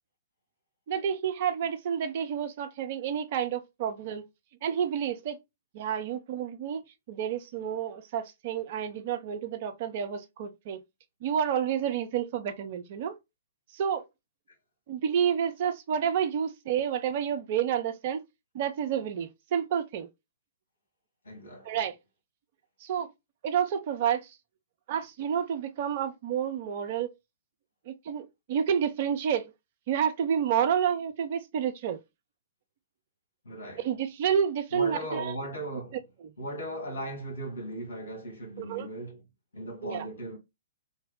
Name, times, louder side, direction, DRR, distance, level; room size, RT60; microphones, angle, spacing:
voice 1, 0.9-4.2 4.6-5.4 5.7-6.8 7.1-10.8 11.2-13.2 13.7-14.0 14.9-18.2 18.5-20.1 21.6-22.0 22.8-23.1 23.4-24.3 24.9-27.1 27.9-29.5 29.9-32.0 33.8-35.3 36.2-36.3 38.6-38.9 39.8-40.0, right 8 dB, 40° right, 0.5 m, -29 dB
voice 2, 21.3-21.7 33.5-33.9 34.7-36.0 36.4-39.2 39.5-40.4, right 1 dB, 65° left, 1.8 m, -37 dB
3.3 x 2.1 x 3.6 m
figure-of-eight pair, 115°, 0 cm